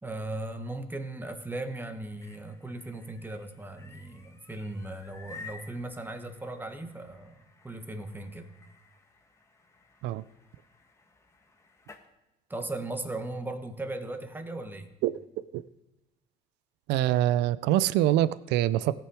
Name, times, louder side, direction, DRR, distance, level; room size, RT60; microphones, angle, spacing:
voice 1, 0.0-8.5 12.5-14.9, right 2 dB, 10° right, 6 dB, 1.2 m, -37 dB
sound 1, 2.0-12.1, left 3 dB, 15° left, 1.2 m, -53 dB
voice 2, 16.9-18.9, right 13 dB, 90° right, 17 dB, 0.4 m, -24 dB
17.0 x 6.0 x 4.8 m, 0.97 s
cardioid pair, 110°, 17 cm